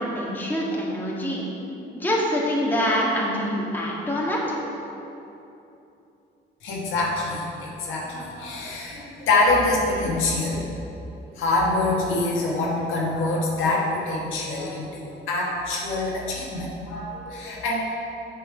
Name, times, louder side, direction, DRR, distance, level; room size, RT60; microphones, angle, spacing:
voice 1, 0.0-1.5 1.9-4.6, equal, 10° left, -4 dB, 1.8 m, -25 dB
voice 2, 6.6-10.7 11.3-17.9, left 2 dB, 90° left, -4 dB, 1.6 m, -25 dB
7.0 x 6.5 x 5.0 m, 2.9 s
cardioid pair, 90°, 20 cm